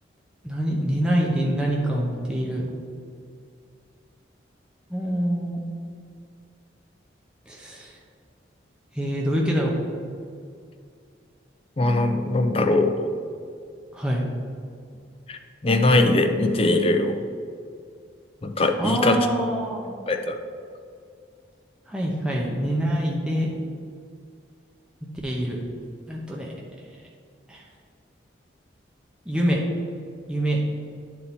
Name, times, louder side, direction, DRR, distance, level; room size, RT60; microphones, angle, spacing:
voice 1, 0.4-2.7 4.9-5.6 7.5-7.9 9.0-9.7 13.9-14.2 18.8-19.9 21.9-23.5 25.2-25.6 26.1-26.5 27.5-27.6 29.3-29.6 30.3-30.6, equal, 5° right, -3 dB, 0.8 m, -25 dB
voice 2, 11.8-12.9 15.3-17.2 18.4-19.3 20.1-20.4, left 2 dB, 30° left, 5 dB, 0.5 m, -21 dB
9.8 x 4.2 x 4.4 m, 2.3 s
head